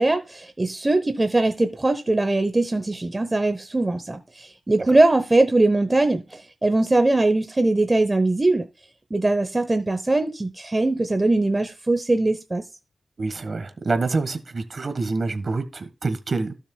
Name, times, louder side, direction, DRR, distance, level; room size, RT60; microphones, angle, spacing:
voice 1, 0.0-8.7 9.1-12.6, right 2 dB, 25° right, 0.8 m, -21 dB
voice 2, 13.2-16.5, right 3 dB, 55° right, 1.3 m, -26 dB
15.5 x 6.6 x 2.3 m
wide cardioid pair, 80°, 0 cm